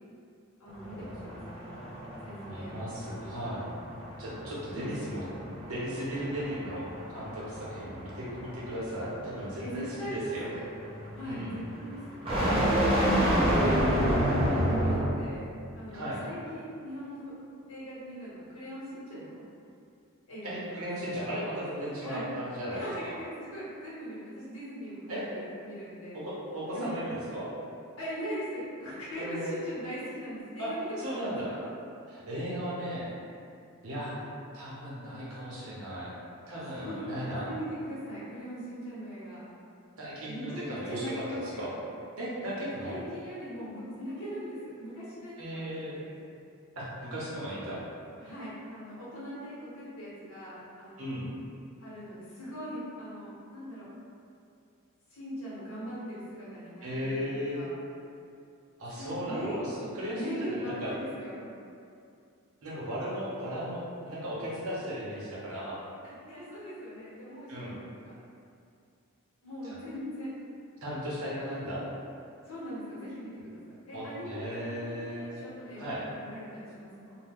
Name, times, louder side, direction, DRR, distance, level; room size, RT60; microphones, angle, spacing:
voice 1, 0.6-1.8 2.2-2.9 4.7-5.5 9.6-10.7 11.2-11.4 11.7-12.5 12.9-17.2 17.7-19.4 20.3-21.3 22.0-22.2 22.7-23.1 23.4-26.2 26.7-26.9 28.0-31.7 36.6-37.0 37.3-39.4 40.2-41.7 42.8-46.1 48.2-51.2 51.8-53.9 55.1-57.7 59.0-59.6 60.1-61.4 66.0-68.2 69.4-70.3 71.4-71.5 72.4-74.4 74.7-77.2, equal, 85° left, -9 dB, 1.2 m, -41 dB
sound 1, 0.7-15.3, equal, 25° right, 0.6 m, -30 dB
voice 2, 2.5-3.7 4.2-5.2 5.7-10.5 11.2-11.6 15.9-16.2 20.4-23.1 25.1-25.2 26.1-27.5 29.2-29.5 30.6-31.5 32.1-33.1 33.8-34.2 34.5-36.1 36.5-37.5 40.0-41.7 42.2-43.0 45.4-46.0 46.8-47.8 51.0-51.3 56.8-57.6 58.8-60.9 62.6-65.8 67.5-67.7 69.6-69.8 70.8-71.8 73.9-75.4 75.8-76.0, equal, 90° right, -7 dB, 0.9 m, -36 dB
2.8 x 2.2 x 3.5 m, 2.4 s
head